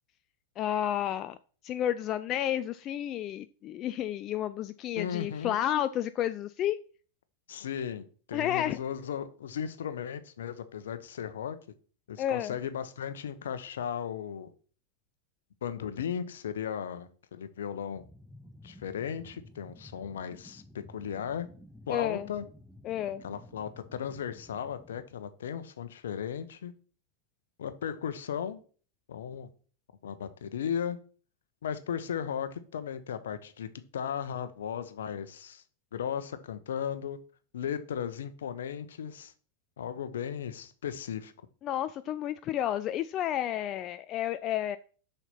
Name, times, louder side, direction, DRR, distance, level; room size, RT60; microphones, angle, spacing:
voice 1, 0.6-1.4 1.6-6.8 8.3-8.8 12.2-12.5 21.9-22.3 22.8-23.2 41.6-44.8, left 11 dB, 35° left, 12 dB, 0.4 m, -31 dB
voice 2, 5.0-5.6 7.5-11.6 12.1-14.5 15.6-18.0 18.6-20.6 20.9-21.5 21.9-22.5 23.2-26.7 27.6-28.6 29.1-29.5 30.0-31.0 31.6-35.6 35.9-37.2 37.5-39.3 39.8-41.3, left 8 dB, 60° left, 11 dB, 1.0 m, -36 dB
sound 1, 17.9-25.1, left 1 dB, ahead, 0.7 m, -53 dB
6.9 x 5.7 x 5.9 m, 0.41 s
figure-of-eight pair, 90°, 0 cm